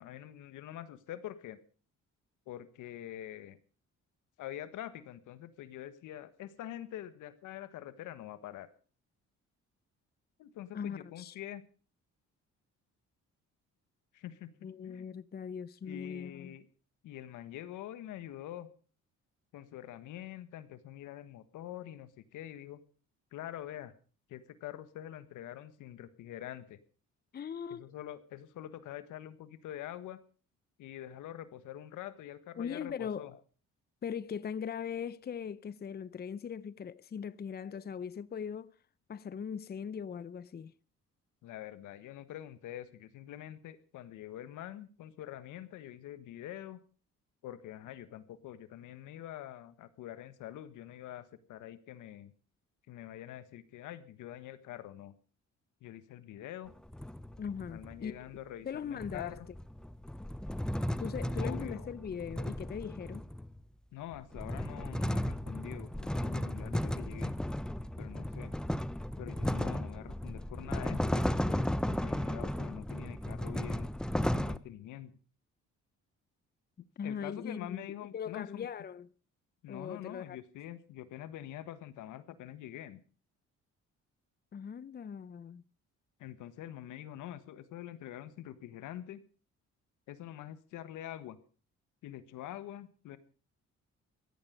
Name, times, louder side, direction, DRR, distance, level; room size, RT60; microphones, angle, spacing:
voice 1, 0.0-1.6 2.5-3.6 4.4-8.7 10.4-11.6 14.1-14.5 14.8-15.1 15.8-16.6 17.0-18.7 19.5-22.8 23.3-23.9 24.3-26.8 27.7-30.2 30.8-33.3 41.4-46.8 47.4-52.3 52.9-55.1 55.8-56.7 57.7-59.5 61.4-61.9 63.9-67.3 68.0-68.5 69.2-75.1 76.8-78.7 79.6-83.0 86.2-89.2 90.1-91.4 92.0-93.2, left 12 dB, 90° left, 1.6 m, -45 dB
voice 2, 10.7-11.4 14.6-16.6 27.3-27.8 32.6-33.3 34.0-38.7 39.1-40.7 57.4-58.3 58.6-59.3 61.0-63.2 77.0-79.1 79.7-80.4 84.5-85.6, left 7 dB, 35° left, 0.7 m, -40 dB
sound 1, 56.7-58.0 59.0-63.6 64.1-74.6, left 1 dB, ahead, 0.8 m, -35 dB
16.5 x 13.5 x 5.2 m
cardioid pair, 90°, 30 cm